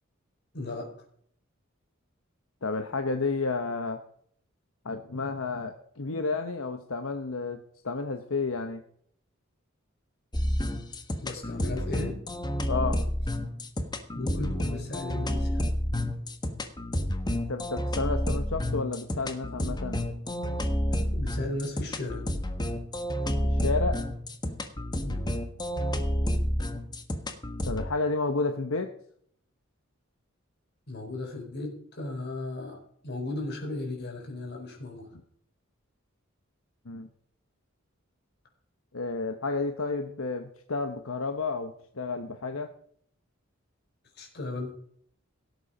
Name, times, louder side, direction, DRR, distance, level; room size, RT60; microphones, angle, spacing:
voice 1, 0.5-0.9 11.2-12.2 14.1-15.7 20.9-22.2 25.0-25.3 30.9-32.8 33.0-35.1 44.2-44.7, left 2 dB, 55° left, 1 dB, 4.7 m, -36 dB
voice 2, 2.6-4.0 4.8-8.8 12.7-13.0 17.5-20.0 23.5-24.0 27.6-28.9 36.9-37.1 38.9-42.7, left 3 dB, 80° left, 6 dB, 1.1 m, -31 dB
sound 1, 10.3-27.9, equal, 20° left, 1.3 m, -30 dB
17.5 x 8.3 x 5.1 m, 0.64 s
head